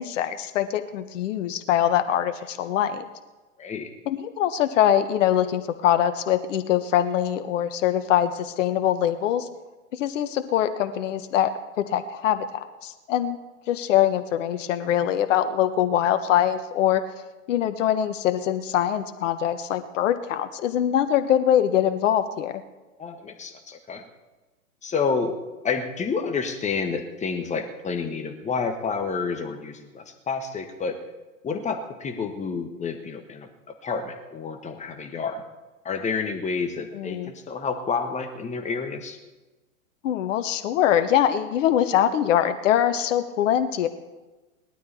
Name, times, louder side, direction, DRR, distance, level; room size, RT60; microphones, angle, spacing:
voice 1, 0.0-3.0 4.1-9.5 9.9-13.4 13.7-17.0 17.5-22.6 36.9-37.3 40.0-43.9, left 10 dB, 55° left, 10 dB, 1.3 m, -23 dB
voice 2, 3.6-3.9 23.0-24.0 24.8-25.4 25.6-31.0 31.4-33.5 33.8-35.4 35.8-39.2, left 5 dB, 15° left, 6 dB, 1.5 m, -29 dB
19.0 x 12.0 x 4.3 m, 1.2 s
hypercardioid pair, 110°, 43 cm